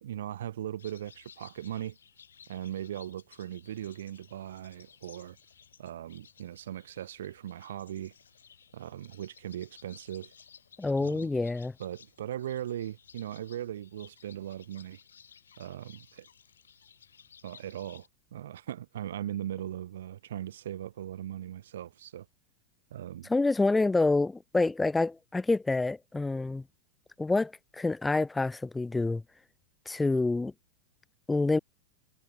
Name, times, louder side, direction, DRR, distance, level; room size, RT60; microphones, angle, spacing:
voice 1, 0.0-2.0 2.5-5.4 5.8-8.1 8.7-10.3 11.0-11.3 11.8-15.0 15.6-16.3 17.4-18.1 18.3-22.3 22.9-23.3, right 11 dB, 60° right, 0.4 m, -39 dB
sound 1, 0.8-18.1, left 7 dB, 70° left, 3.3 m, -57 dB
voice 2, 10.8-11.7 23.3-26.6 27.2-29.2 29.9-30.5 31.3-31.6, left 3 dB, 10° left, 0.7 m, -27 dB
figure-of-eight pair, 90°, 0 cm